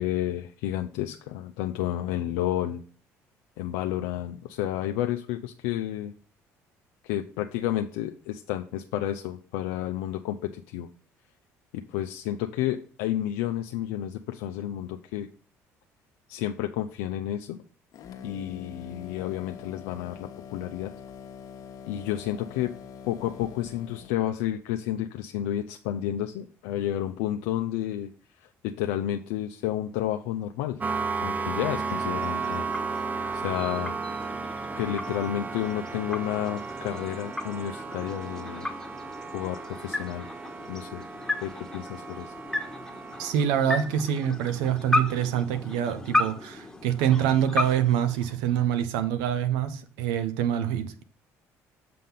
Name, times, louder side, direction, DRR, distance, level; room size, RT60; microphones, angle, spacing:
voice 1, 0.0-2.8 3.6-6.1 7.0-10.9 11.7-15.3 16.3-17.6 18.2-20.9 21.9-22.7 23.1-30.8 31.2-32.7 33.3-33.9 34.7-38.7 39.3-40.3 40.7-41.0 41.4-42.3, left 12 dB, 85° left, 0.5 m, -31 dB
sound 1, 17.9-24.2, left 7 dB, 60° left, 1.1 m, -44 dB
sound 2, 30.8-43.3, right 5 dB, 25° right, 0.6 m, -34 dB
sound 3, 31.1-48.9, left 2 dB, 5° left, 1.4 m, -35 dB
voice 2, 43.2-51.0, right 10 dB, 85° right, 0.8 m, -25 dB
7.5 x 3.8 x 5.7 m
supercardioid pair, 75°, 7 cm